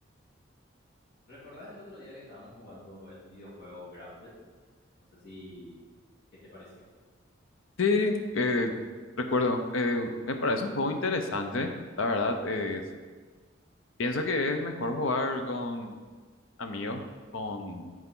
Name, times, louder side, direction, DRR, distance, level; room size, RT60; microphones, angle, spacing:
voice 1, 1.3-4.3 5.2-5.7 6.5-6.8, left 1 dB, 50° left, -11 dB, 2.2 m, -47 dB
voice 2, 7.8-8.7 9.3-11.7 12.0-12.8 14.0-16.0 16.6-17.0 17.3-17.9, left 3 dB, 80° left, 5 dB, 0.7 m, -28 dB
8.2 x 4.5 x 3.8 m, 1.4 s
head